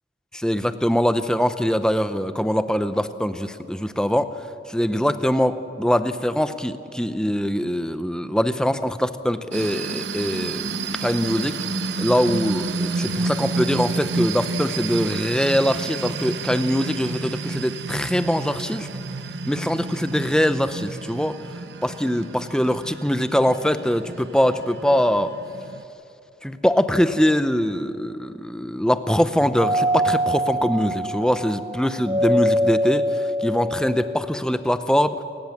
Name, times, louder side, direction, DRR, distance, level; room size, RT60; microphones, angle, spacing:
voice 1, 0.3-4.3 4.7-11.6 12.0-18.9 19.5-21.4 21.8-25.3 26.4-35.2, equal, 5° left, 11 dB, 0.7 m, -23 dB
sound 1, 9.5-25.8, right 3 dB, 80° right, 0.9 m, -30 dB
Doorbell, 29.6-34.4, equal, 25° right, 1.0 m, -24 dB
28.5 x 16.0 x 7.2 m, 2.6 s
head